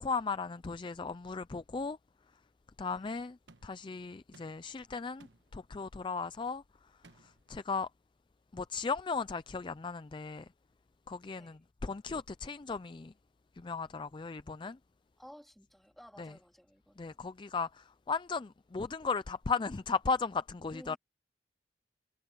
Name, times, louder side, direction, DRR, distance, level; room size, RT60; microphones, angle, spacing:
voice 1, 0.0-2.0 2.8-3.4 3.6-6.6 7.2-7.9 8.5-10.5 11.1-13.1 13.6-14.8 16.2-16.3 17.0-21.0, left 4 dB, 25° left, 0.4 m, -36 dB
sound 1, 3.5-3.8 4.3-4.8 5.2-5.6 7.0-7.5, right 3 dB, 85° right, 1.2 m, -60 dB
voice 2, 15.2-17.2 20.7-21.0, equal, ahead, 3.7 m, -55 dB
head